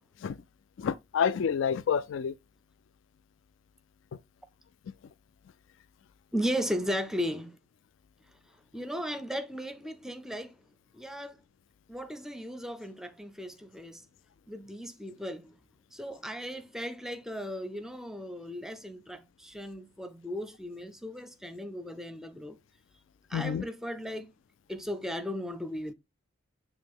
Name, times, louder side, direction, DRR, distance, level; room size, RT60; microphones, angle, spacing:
voice 1, 0.8-2.3 23.3-23.6, left 7 dB, 65° left, 0.3 m, -28 dB
voice 2, 6.3-7.6 8.7-10.6 10.9-11.4 11.9-14.0 14.5-15.5 15.9-22.6 23.3-24.3 24.7-25.9, equal, ahead, 0.5 m, -36 dB
8.6 x 3.0 x 3.6 m
head